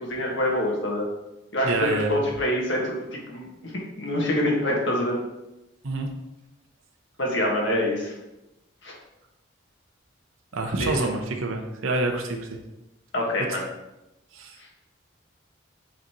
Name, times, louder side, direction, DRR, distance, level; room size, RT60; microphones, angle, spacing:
voice 1, 0.0-1.1 1.5-5.2 7.2-8.1 8.8-8.9 10.6-11.0 13.1-13.6, left 1 dB, 60° left, -2 dB, 1.5 m, -26 dB
voice 2, 1.6-2.2 5.8-6.1 10.5-12.5 14.3-14.6, right 2 dB, 80° right, 2 dB, 0.8 m, -27 dB
7.7 x 4.1 x 3.0 m, 0.94 s
head